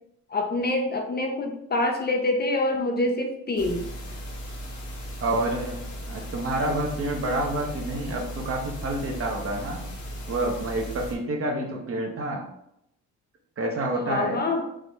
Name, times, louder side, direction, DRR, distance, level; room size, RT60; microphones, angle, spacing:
voice 1, 0.3-3.9 14.0-14.6, left 2 dB, 35° left, 3 dB, 0.7 m, -26 dB
sound 1, 3.6-11.1, equal, 70° left, 1.3 m, -37 dB
voice 2, 5.2-5.8 6.1-9.9 10.3-12.4 13.6-14.4, right 1 dB, 45° right, 1 dB, 1.1 m, -28 dB
4.9 x 2.6 x 3.4 m, 0.77 s
cardioid pair, 90°, 30 cm